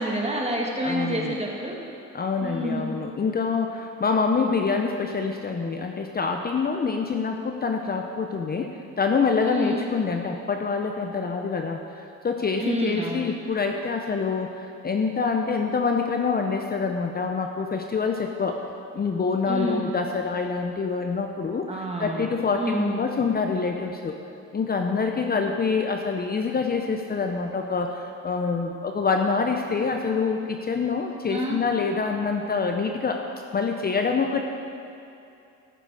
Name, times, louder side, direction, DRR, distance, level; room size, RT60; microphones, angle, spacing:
voice 1, 0.0-1.7 2.4-2.9 9.4-9.8 12.6-13.2 19.5-19.9 21.7-22.3 22.6-22.9 31.3-31.6, right 1 dB, 20° right, -1 dB, 2.0 m, -28 dB
voice 2, 0.8-1.4 2.1-8.7 9.0-18.6 18.9-24.2 24.5-33.2 33.5-34.4, left 5 dB, 30° left, 3 dB, 0.7 m, -26 dB
14.5 x 6.8 x 4.8 m, 2.6 s
cardioid pair, 90°, 30 cm